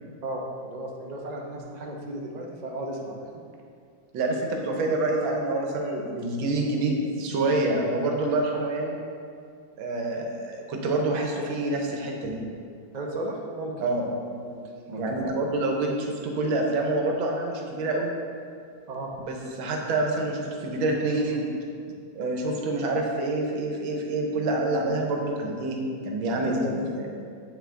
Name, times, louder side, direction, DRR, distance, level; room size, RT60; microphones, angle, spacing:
voice 1, 0.2-3.3 12.9-13.7 14.4-14.6 14.9-15.1 18.9-19.2 26.4-26.7, right 1 dB, 45° right, -1 dB, 0.5 m, -34 dB
voice 2, 4.1-9.0 9.8-12.4 13.8-14.1 15.0-18.1 19.3-21.5 22.2-27.1, right 2 dB, 90° right, 1 dB, 1.7 m, -27 dB
8.1 x 5.7 x 3.7 m, 2.3 s
omnidirectional pair, 2.1 m